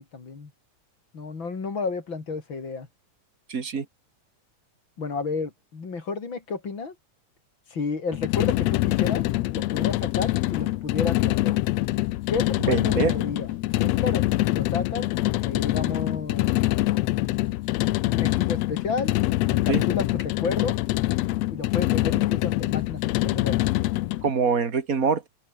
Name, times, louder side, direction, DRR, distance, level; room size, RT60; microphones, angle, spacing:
voice 1, 0.1-0.5 1.1-2.9 5.0-7.0 7.7-9.2 9.5-11.6 12.3-13.5 13.8-14.3 14.5-15.1 15.4-16.5 16.9-17.4 18.0-19.1 19.5-20.8 21.5-23.6, left 4 dB, 35° left, 3.8 m, -32 dB
voice 2, 3.5-3.9 12.7-13.2 19.7-19.8 24.2-25.3, right 5 dB, 30° right, 1.8 m, -24 dB
sound 1, 8.1-24.3, left 17 dB, 85° left, 1.5 m, -24 dB
open air
omnidirectional pair, 3.7 m